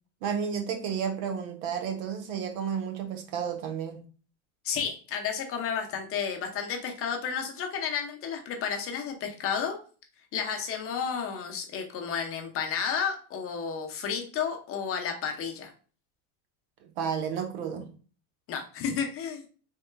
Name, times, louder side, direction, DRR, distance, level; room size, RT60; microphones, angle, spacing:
voice 1, 0.2-4.0 16.8-17.9, right 7 dB, 60° right, 1.0 m, -32 dB
voice 2, 4.6-9.8 10.3-15.7 18.5-19.4, left 7 dB, 35° left, 0.7 m, -32 dB
4.2 x 3.7 x 2.2 m
supercardioid pair, 145°, 42 cm